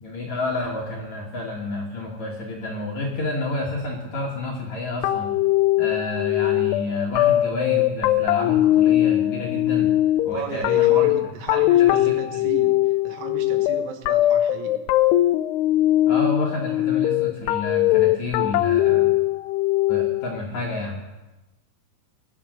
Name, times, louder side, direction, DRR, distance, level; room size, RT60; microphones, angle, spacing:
voice 1, 0.0-5.3 5.8-9.9 10.2-11.1 11.5-12.5 16.1-19.1 19.9-21.0, left 2 dB, 60° left, -2 dB, 2.0 m, -30 dB
sound 1, 5.0-20.4, left 14 dB, 90° left, 2.3 m, -20 dB
voice 2, 10.3-14.8, right 6 dB, 80° right, 5 dB, 3.7 m, -36 dB
21.0 x 7.3 x 6.4 m, 1.0 s
omnidirectional pair, 5.3 m